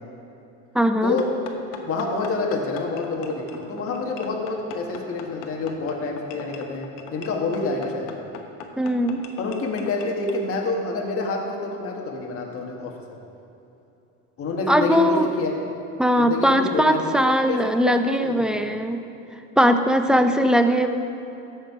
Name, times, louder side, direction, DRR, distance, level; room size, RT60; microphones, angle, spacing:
voice 1, 0.7-1.2 8.8-9.2 14.7-15.3 16.0-19.0 19.6-20.9, equal, ahead, 7 dB, 0.5 m, -20 dB
sound 1, 1.2-10.4, left 6 dB, 75° left, 1.2 m, -41 dB
voice 2, 1.8-8.1 9.4-12.9 14.4-15.5 16.2-18.5 20.1-20.4, left 3 dB, 45° left, 0 dB, 1.6 m, -28 dB
14.0 x 6.5 x 4.9 m, 3.0 s
cardioid pair, 120°, 32 cm